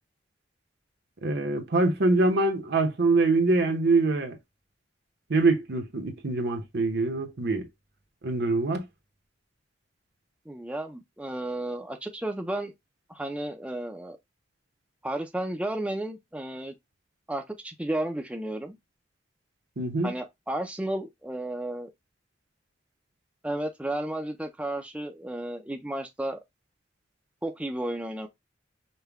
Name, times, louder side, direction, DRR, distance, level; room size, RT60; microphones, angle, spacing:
voice 1, 1.2-4.4 5.3-7.6 8.2-8.9 19.8-20.1, right 3 dB, 65° right, 0.9 m, -24 dB
voice 2, 10.5-12.7 13.1-14.2 15.0-16.7 17.3-18.8 20.0-21.9 23.4-26.4 27.4-28.3, right 1 dB, 5° right, 0.5 m, -33 dB
5.5 x 2.2 x 3.4 m
head